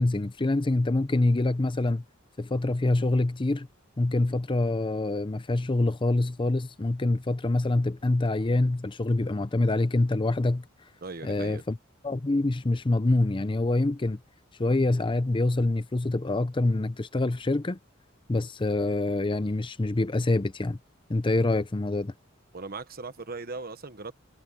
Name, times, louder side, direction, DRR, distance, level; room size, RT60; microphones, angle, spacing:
voice 1, 0.0-2.0 2.4-3.7 4.0-10.6 11.2-11.8 12.0-14.2 14.6-17.8 18.3-20.8 21.1-22.1, left 2 dB, 25° left, 0.6 m, -25 dB
voice 2, 11.0-11.6 22.5-24.1, right 3 dB, 50° right, 1.3 m, -38 dB
head